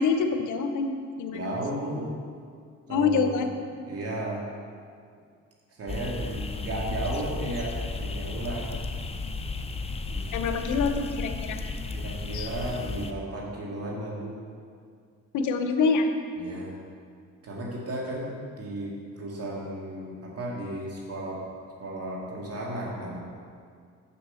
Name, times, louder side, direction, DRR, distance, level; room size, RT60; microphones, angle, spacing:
voice 1, 0.0-1.6 2.9-3.5 10.3-11.6 12.3-12.5 15.3-16.1, left 4 dB, 80° left, 6 dB, 0.8 m, -26 dB
voice 2, 1.3-2.1 2.9-3.3 3.8-4.5 5.7-8.7 10.1-10.5 11.9-14.4 16.4-16.8 17.4-21.4 21.8-23.2, right 1 dB, 50° right, -3 dB, 2.3 m, -34 dB
sound 1, 5.9-13.1, left 3 dB, 20° left, 0.6 m, -33 dB
7.4 x 7.0 x 5.6 m, 2.2 s
cardioid pair, 90°, 30 cm